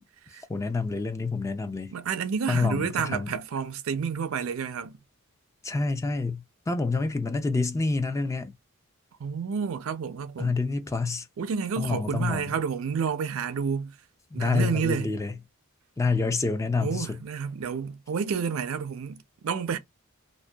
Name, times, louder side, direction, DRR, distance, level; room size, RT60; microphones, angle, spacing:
voice 1, 0.5-1.9 2.5-3.3 5.6-8.5 10.4-11.3 11.8-12.6 14.3-15.3 16.0-17.2, left 3 dB, 15° left, 0.3 m, -27 dB
voice 2, 1.9-5.0 9.2-10.6 11.4-13.9 14.3-15.1 16.8-19.8, right 6 dB, 70° right, 0.4 m, -30 dB
2.6 x 2.1 x 2.2 m
head